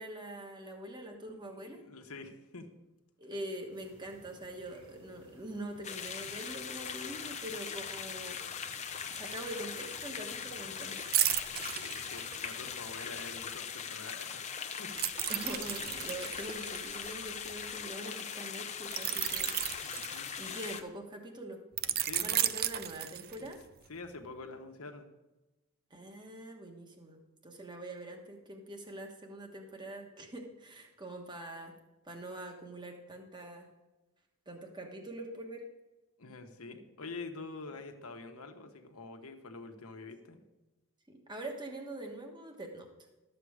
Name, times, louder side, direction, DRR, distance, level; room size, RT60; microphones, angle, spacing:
voice 1, 0.0-1.8 3.2-8.4 9.1-11.3 11.9-12.1 15.3-19.5 20.4-21.6 22.2-23.6 25.9-31.8 32.0-33.7 34.5-35.6 41.1-42.9, right 1 dB, 20° right, 3 dB, 1.3 m, -44 dB
voice 2, 1.5-2.7 6.2-6.3 11.6-14.4 14.8-15.1 19.8-20.3 21.9-22.4 23.4-23.5 23.9-25.1 36.2-40.4, left 3 dB, 75° left, 6 dB, 1.2 m, -46 dB
sound 1, 3.7-13.5, right 1 dB, 80° right, 3.9 m, -60 dB
sound 2, 5.8-20.8, left 7 dB, 30° left, 0.7 m, -40 dB
sound 3, 11.1-12.7 15.0-17.7 18.9-20.8 21.8-23.6 24.0-24.2, right 11 dB, 45° right, 0.5 m, -33 dB
12.5 x 7.7 x 4.9 m, 1.1 s
head